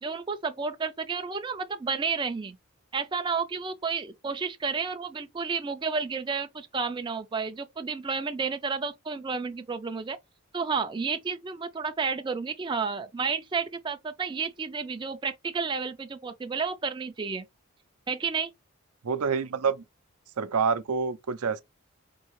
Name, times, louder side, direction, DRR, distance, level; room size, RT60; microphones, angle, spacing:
voice 1, 0.0-2.6 2.9-10.2 10.5-17.5 18.1-18.5, right 5 dB, 20° right, 0.3 m, -31 dB
voice 2, 19.0-19.8 20.4-21.6, right 5 dB, 85° right, 0.5 m, -27 dB
4.4 x 2.7 x 3.0 m
head